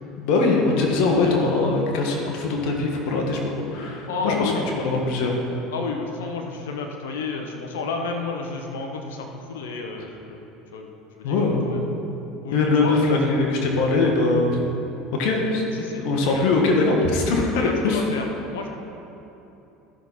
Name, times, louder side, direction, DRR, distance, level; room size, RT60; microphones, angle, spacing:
voice 1, 0.2-4.5 4.8-5.4 11.2-11.7 12.5-14.6 15.1-15.6 15.9-18.0, left 3 dB, 70° left, 0 dB, 1.6 m, -21 dB
voice 2, 0.9-1.5 4.1-4.7 5.7-10.4 10.7-11.8 12.4-13.6 15.4-16.5 17.5-18.7, left 4 dB, 85° left, 3 dB, 0.9 m, -32 dB
13.0 x 6.3 x 4.2 m, 3.0 s
supercardioid pair, 90°, 0 cm